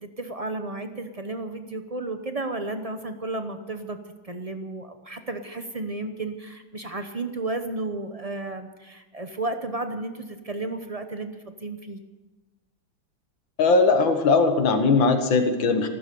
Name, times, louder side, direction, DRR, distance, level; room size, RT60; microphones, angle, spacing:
voice 1, 0.0-4.0 4.2-12.0, right 2 dB, 40° right, 7 dB, 0.5 m, -33 dB
voice 2, 13.6-15.9, left 4 dB, 85° left, 6 dB, 2.3 m, -19 dB
15.0 x 13.0 x 6.9 m, 1.1 s
omnidirectional pair, 2.1 m